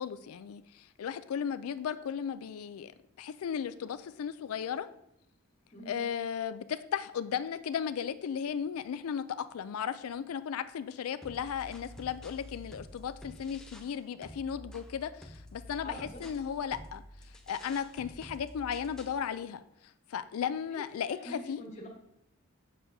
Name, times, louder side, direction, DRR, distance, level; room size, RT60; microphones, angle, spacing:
voice 1, 0.0-2.9 3.2-4.9 5.9-15.9 16.2-17.0 17.5-19.6 20.1-21.6, left 8 dB, 90° left, 13 dB, 0.4 m, -35 dB
voice 2, 5.7-6.0 15.8-16.2 20.7-21.9, left 1 dB, 30° left, -2 dB, 1.2 m, -44 dB
sound 1, 11.2-14.0 14.2-19.2, equal, 5° left, 0.4 m, -49 dB
7.7 x 6.2 x 2.7 m, 0.79 s
head